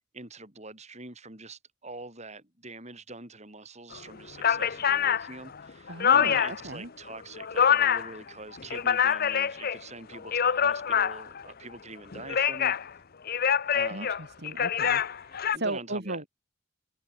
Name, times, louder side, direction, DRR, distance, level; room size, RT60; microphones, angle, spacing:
voice 1, 0.1-12.7 13.7-14.1 15.5-16.2, right 3 dB, 35° right, 7.6 m, -44 dB
sound 1, 3.9-4.0 4.4-6.7 7.1-8.2 8.5-9.8 10.1-11.4 12.1-12.9 13.3-15.6, left 8 dB, 45° left, 0.7 m, -25 dB
voice 2, 5.9-6.9 13.9-14.1 14.4-16.2, right 2 dB, 50° right, 3.9 m, -36 dB
head